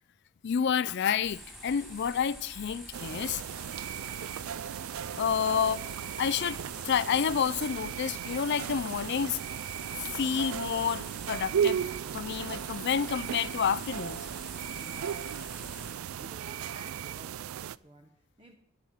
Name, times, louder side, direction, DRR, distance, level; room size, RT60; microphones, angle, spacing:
voice 1, 0.4-3.4 5.1-5.8 6.2-6.6 6.8-9.4 10.0-11.8 12.1-14.2, left 7 dB, 55° left, 0.4 m, -29 dB
sound 1, 1.2-15.9, equal, ahead, 2.7 m, -47 dB
sound 2, 2.9-17.8, right 9 dB, 75° right, 0.4 m, -36 dB
voice 2, 14.7-18.6, right 1 dB, 25° right, 0.9 m, -53 dB
11.5 x 6.2 x 8.8 m
head